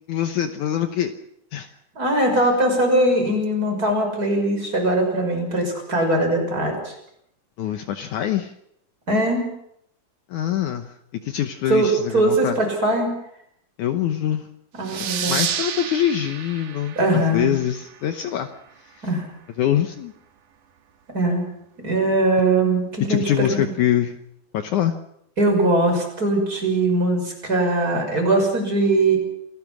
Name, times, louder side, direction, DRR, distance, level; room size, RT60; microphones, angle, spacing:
voice 1, 0.1-1.1 1.5-1.7 7.6-8.5 10.3-10.9 11.2-12.6 13.8-14.5 14.9-18.5 18.8-19.1 19.6-20.1 23.1-24.2 24.5-25.0, left 11 dB, 70° left, 7 dB, 2.3 m, -24 dB
voice 2, 2.0-6.9 9.1-9.5 11.7-11.9 12.1-13.1 14.8-15.4 17.0-17.5 19.0-19.2 21.1-21.4 21.8-23.6 25.4-29.2, right 1 dB, 25° right, 2 dB, 6.4 m, -21 dB
sound 1, 14.8-18.1, right 9 dB, 75° right, 3.2 m, -30 dB
28.0 x 18.0 x 6.2 m, 0.74 s
omnidirectional pair, 4.0 m